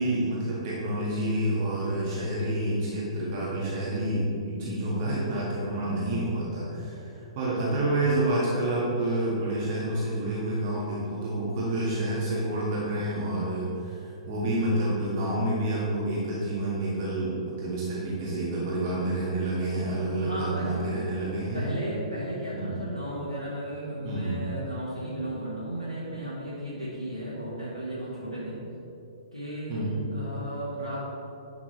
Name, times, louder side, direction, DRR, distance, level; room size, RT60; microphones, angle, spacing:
voice 1, 0.0-21.7 22.5-22.7 24.0-24.4 29.7-30.0, right 1 dB, 40° right, -7 dB, 1.8 m, -28 dB
voice 2, 20.2-21.0 21.5-28.6 29.3-31.0, right 1 dB, 90° right, -10 dB, 1.7 m, -35 dB
10.5 x 5.9 x 3.2 m, 2.9 s
figure-of-eight pair, 115°, 3 cm